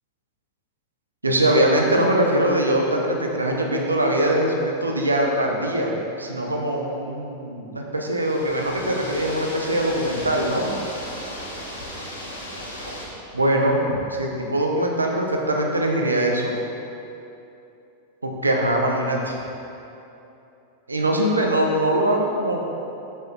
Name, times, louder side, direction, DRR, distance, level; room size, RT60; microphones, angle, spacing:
voice 1, 1.2-10.7 13.3-16.5 18.2-19.4 20.9-22.6, right 1 dB, 80° right, 1 dB, 0.9 m, -22 dB
sound 1, 8.1-13.1, equal, 80° left, 1.3 m, -36 dB
6.7 x 6.5 x 4.2 m, 2.8 s
figure-of-eight pair, 90°, 0 cm